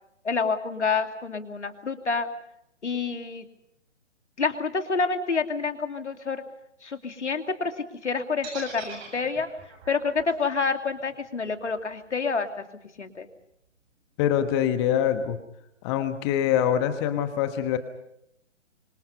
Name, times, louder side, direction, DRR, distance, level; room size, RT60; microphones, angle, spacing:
voice 1, 0.2-2.3 2.8-3.5 4.4-6.4 6.8-7.7 8.0-9.5 9.9-12.5 13.0-13.3, left 4 dB, 70° left, 7 dB, 2.8 m, -28 dB
sound 1, 8.4-12.5, right 5 dB, 25° right, 7.5 m, -44 dB
voice 2, 14.2-15.4 15.8-17.8, left 10 dB, 20° left, 9 dB, 1.3 m, -24 dB
26.0 x 25.5 x 5.5 m, 0.79 s
figure-of-eight pair, 135°, 36 cm